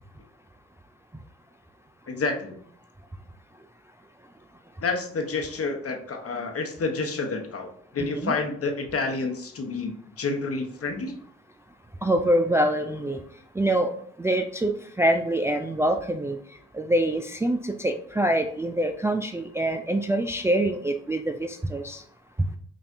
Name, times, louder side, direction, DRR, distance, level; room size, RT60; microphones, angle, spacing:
voice 1, 2.1-2.6 4.8-11.2, left 3 dB, 45° left, 4 dB, 1.0 m, -29 dB
voice 2, 8.0-8.3 12.0-13.2 13.6-13.9 14.2-16.4 16.7-22.0, right 1 dB, 10° right, 6 dB, 0.3 m, -25 dB
5.6 x 2.5 x 2.6 m, 0.62 s
supercardioid pair, 45°, 32 cm